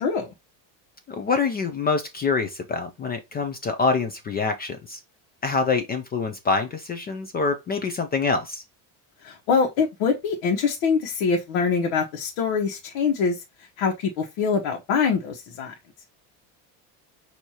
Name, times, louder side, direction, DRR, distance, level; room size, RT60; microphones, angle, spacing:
voice 1, 0.0-0.3 9.2-13.4 13.8-15.7, left 5 dB, 75° left, 1.1 m, -24 dB
voice 2, 1.1-5.0 5.4-8.6, left 4 dB, 25° left, 0.3 m, -25 dB
6.3 x 2.7 x 2.8 m
cardioid pair, 140°, 45 cm